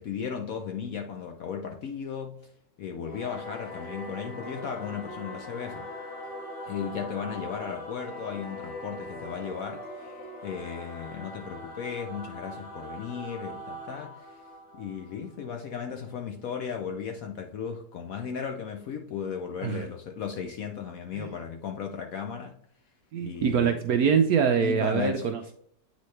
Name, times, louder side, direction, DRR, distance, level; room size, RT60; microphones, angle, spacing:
voice 1, 0.0-2.3 2.8-5.8 6.7-9.8 10.4-14.1 14.8-22.5 23.2-23.8 24.6-25.3, left 7 dB, 70° left, 0.8 m, -35 dB
Singing / Musical instrument, 3.0-15.9, left 1 dB, 40° left, 2.9 m, -41 dB
voice 2, 23.1-25.5, right 7 dB, 75° right, 0.9 m, -24 dB
8.2 x 4.1 x 3.2 m
omnidirectional pair, 2.0 m